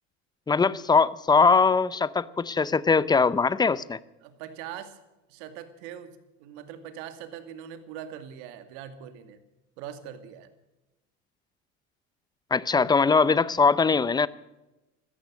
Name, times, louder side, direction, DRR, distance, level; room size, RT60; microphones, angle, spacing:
voice 1, 0.5-4.0 12.5-14.3, left 4 dB, 10° left, 18 dB, 0.6 m, -21 dB
voice 2, 4.2-5.0 5.3-9.4 9.8-10.5, right 9 dB, 75° right, 9 dB, 2.3 m, -42 dB
16.0 x 13.5 x 6.3 m, 0.98 s
supercardioid pair, 120°, 34 cm